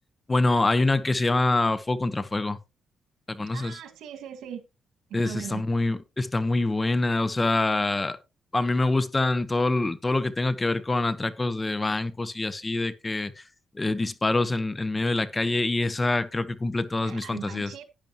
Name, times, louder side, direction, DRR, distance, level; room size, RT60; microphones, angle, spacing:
voice 1, 0.3-2.6 3.3-3.8 5.1-8.2 8.5-13.4 13.7-17.7, left 2 dB, 20° left, 1.0 m, -25 dB
voice 2, 3.5-4.7 5.1-5.6 17.0-17.8, right 9 dB, 85° right, 1.9 m, -40 dB
11.0 x 10.5 x 3.0 m
cardioid pair, 100°, 0 cm